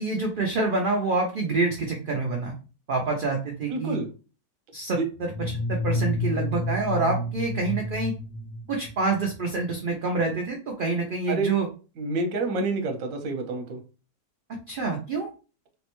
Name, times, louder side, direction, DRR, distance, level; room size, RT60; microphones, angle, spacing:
voice 1, 0.0-2.5 2.9-4.0 4.7-8.1 8.7-11.7 14.7-15.3, right 3 dB, 85° right, 1 dB, 0.4 m, -27 dB
voice 2, 3.7-4.1 4.9-5.0 11.3-11.5 12.0-13.8, right 3 dB, 65° right, 4 dB, 1.0 m, -28 dB
sound 1, 5.2-9.3, left 1 dB, 90° left, 1.1 m, -30 dB
3.6 x 2.1 x 2.9 m, 0.34 s
omnidirectional pair, 1.6 m